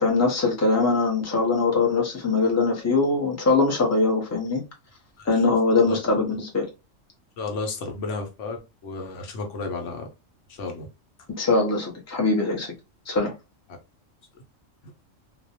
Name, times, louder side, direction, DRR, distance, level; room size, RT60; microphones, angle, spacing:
voice 1, 0.0-4.6 5.3-6.6 11.4-12.7 13.1-13.3, left 3 dB, 20° left, 0.4 m, -22 dB
voice 2, 7.4-10.1 10.5-10.9 14.8-14.9, left 3 dB, 70° left, 1.0 m, -33 dB
2.3 x 2.1 x 2.7 m
omnidirectional pair, 1.3 m